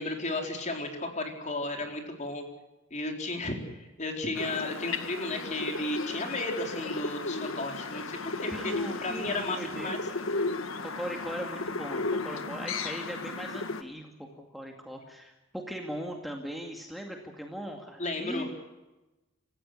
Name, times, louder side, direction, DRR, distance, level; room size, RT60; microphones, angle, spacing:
voice 1, 0.0-2.5 2.9-8.7 9.0-10.0 18.0-18.5, left 2 dB, 35° left, 3 dB, 4.4 m, -34 dB
sound 1, 4.4-13.8, left 3 dB, 85° left, 1.7 m, -35 dB
voice 2, 8.5-10.0 10.8-18.5, equal, ahead, 1 dB, 2.2 m, -39 dB
28.0 x 15.0 x 8.3 m, 1.1 s
head